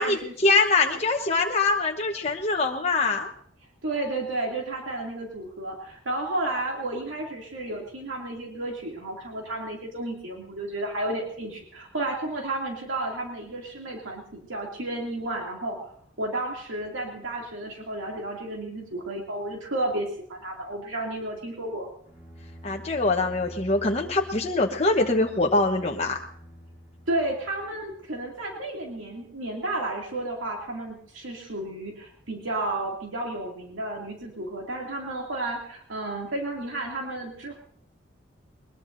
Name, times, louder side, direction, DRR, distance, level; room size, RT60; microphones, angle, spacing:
voice 1, 0.0-3.3 22.6-26.2, left 3 dB, 35° left, 1 dB, 1.1 m, -23 dB
voice 2, 3.8-21.9 27.1-37.6, right 2 dB, 80° right, -1 dB, 2.6 m, -32 dB
Bowed string instrument, 22.0-27.9, equal, 10° right, 5.9 m, -46 dB
21.5 x 21.0 x 2.6 m, 0.63 s
head